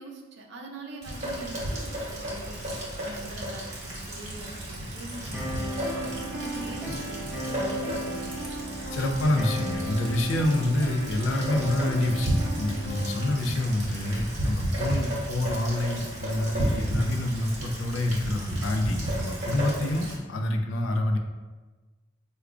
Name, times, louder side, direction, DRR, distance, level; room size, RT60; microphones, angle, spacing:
voice 1, 0.0-2.6 3.0-8.8 13.3-13.8, right 2 dB, 60° right, 0 dB, 0.5 m, -43 dB
Rain, 1.0-20.2, right 1 dB, 35° right, 1.0 m, -32 dB
sound 1, 5.3-13.3, right 1 dB, 5° right, 0.7 m, -35 dB
voice 2, 8.9-21.2, left 1 dB, 85° left, 4 dB, 0.4 m, -27 dB
4.8 x 2.2 x 2.4 m, 1.3 s
head